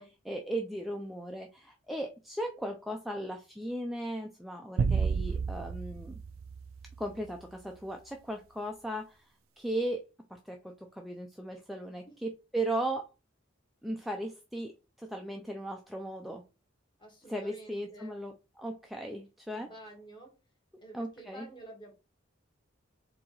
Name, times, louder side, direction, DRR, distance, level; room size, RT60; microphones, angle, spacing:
voice 1, 0.0-6.2 7.0-9.2 9.6-13.1 13.8-16.4 17.3-19.7 20.9-21.5, right 1 dB, ahead, 2 dB, 0.4 m, -37 dB
sound 1, 4.8-7.3, right 5 dB, 85° right, 0.4 m, -31 dB
voice 2, 17.0-18.2 19.5-20.3 20.8-21.9, right 1 dB, 25° left, -1 dB, 1.8 m, -50 dB
4.2 x 2.8 x 3.9 m, 0.29 s
head